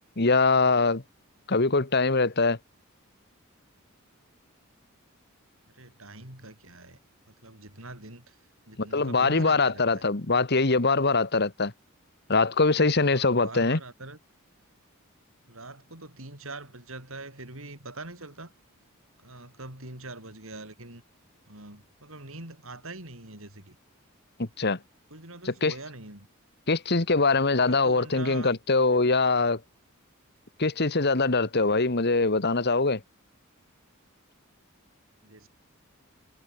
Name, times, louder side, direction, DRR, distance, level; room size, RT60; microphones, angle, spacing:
voice 1, 0.2-1.0 1.5-2.6 8.9-11.7 12.3-13.8 24.4-24.8 25.4-25.7 26.7-29.6 30.6-33.0, left 3 dB, 50° left, 1.5 m, -23 dB
voice 2, 5.7-7.0 7.3-8.4 8.7-10.1 13.0-14.2 15.5-18.5 19.2-21.0 21.5-23.8 25.1-26.3 27.6-28.6 35.2-35.5, right 2 dB, 65° right, 7.6 m, -43 dB
head